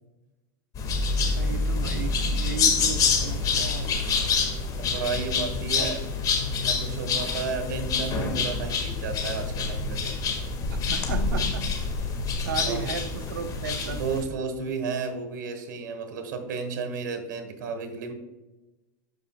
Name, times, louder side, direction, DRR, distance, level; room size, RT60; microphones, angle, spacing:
sound 1, 0.7-14.2, left 4 dB, 35° left, 1.7 m, -27 dB
voice 1, 1.2-3.9 5.8-5.9 10.7-11.7 12.1-14.0, right 5 dB, 85° right, 9 dB, 0.8 m, -35 dB
voice 2, 4.7-6.0 6.6-10.1 12.6-12.9 13.8-18.1, right 4 dB, 60° right, 6 dB, 1.1 m, -33 dB
12.0 x 4.8 x 2.2 m, 1.1 s
hypercardioid pair, 110°, 10 cm